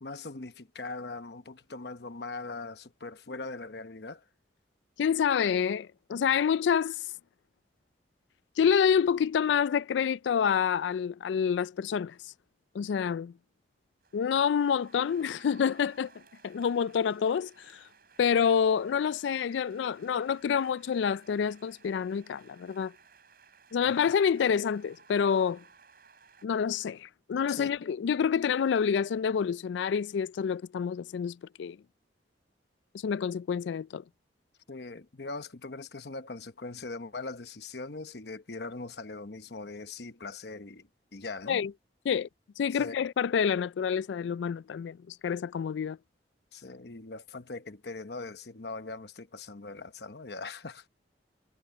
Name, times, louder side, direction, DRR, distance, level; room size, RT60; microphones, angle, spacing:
voice 1, 0.0-4.2 23.8-24.1 27.5-27.7 34.7-41.6 42.7-42.9 46.5-50.9, left 3 dB, 60° left, 1.0 m, -41 dB
voice 2, 5.0-7.0 8.6-12.2 12.7-13.3 14.1-16.1 16.4-17.5 18.2-22.9 23.7-25.6 26.4-31.8 33.0-34.0 41.5-41.7 42.1-42.3 42.6-46.0, left 7 dB, 80° left, 0.3 m, -27 dB
sound 1, 14.0-26.5, right 5 dB, 55° right, 6.8 m, -59 dB
head